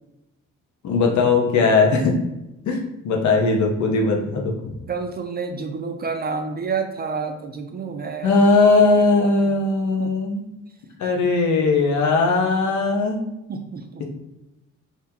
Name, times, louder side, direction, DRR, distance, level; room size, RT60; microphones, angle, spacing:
voice 1, 0.8-2.2 2.7-4.7 8.2-10.4 11.0-13.2, left 3 dB, 70° left, 1 dB, 0.8 m, -19 dB
voice 2, 4.9-8.4 10.0-10.1 13.5-14.0, right 5 dB, 35° right, 5 dB, 0.4 m, -29 dB
2.8 x 2.7 x 3.5 m, 0.93 s
cardioid pair, 90°, 30 cm